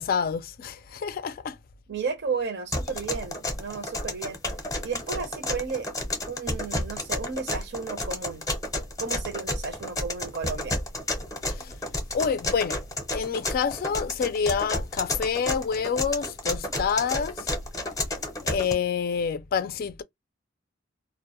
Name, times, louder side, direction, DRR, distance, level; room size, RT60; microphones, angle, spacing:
voice 1, 0.0-1.6 11.5-11.7 12.1-12.8 13.1-17.5 18.4-20.0, left 6 dB, 50° left, 0.3 m, -27 dB
voice 2, 1.9-4.4 4.8-5.9 6.3-8.4 9.0-10.8, right 5 dB, 60° right, 0.6 m, -33 dB
sound 1, 2.7-18.7, left 1 dB, 20° left, 0.6 m, -31 dB
2.2 x 2.0 x 2.9 m
head